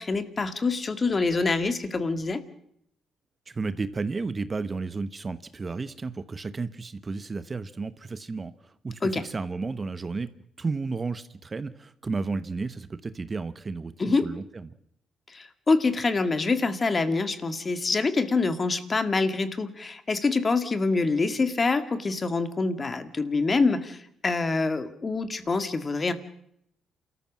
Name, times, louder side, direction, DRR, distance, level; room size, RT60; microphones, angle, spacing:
voice 1, 0.0-2.4 9.0-9.2 14.0-14.3 15.3-26.1, left 3 dB, 30° left, 11 dB, 2.0 m, -26 dB
voice 2, 3.5-10.3 10.6-13.9 14.2-14.7, right 4 dB, 30° right, 14 dB, 1.0 m, -32 dB
28.5 x 14.0 x 7.4 m, 0.73 s
cardioid pair, 90°, 0 cm